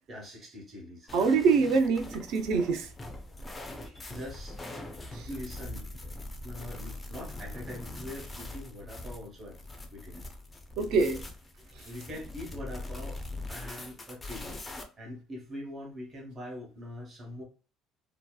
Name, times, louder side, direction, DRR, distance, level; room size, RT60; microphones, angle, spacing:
voice 1, 0.1-1.1 3.8-4.6 5.3-6.1 6.4-9.6 9.9-10.1 11.8-13.2 13.5-14.6 15.0-17.4, left 1 dB, 25° right, 1.0 m, -43 dB
sound 1, 1.1-14.8, left 2 dB, 10° left, 0.4 m, -42 dB
voice 2, 1.1-2.9 5.1-5.3 10.8-11.2, right 5 dB, 60° right, 0.4 m, -25 dB
2.7 x 2.2 x 2.2 m
cardioid pair, 170°, 0 cm